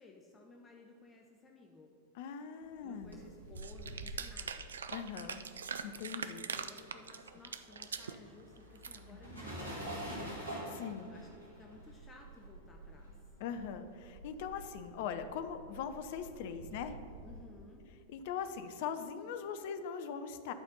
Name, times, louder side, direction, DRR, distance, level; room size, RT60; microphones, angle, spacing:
voice 1, 0.0-1.9 2.8-4.7 6.4-10.4 11.1-13.3 17.2-17.9, left 3 dB, 15° left, 0 dB, 0.7 m, -57 dB
voice 2, 2.1-3.2 4.9-5.4 5.8-6.4 9.1-9.2 10.7-11.1 13.4-17.0 18.1-20.5, left 7 dB, 50° left, 10 dB, 0.5 m, -41 dB
sound 1, 2.8-6.4 6.7-17.4, right 1 dB, 85° left, 2.0 m, -47 dB
sound 2, 3.6-8.2 8.6-9.0, right 6 dB, 70° right, 0.4 m, -42 dB
11.5 x 4.2 x 5.4 m, 2.4 s
figure-of-eight pair, 90°, 0 cm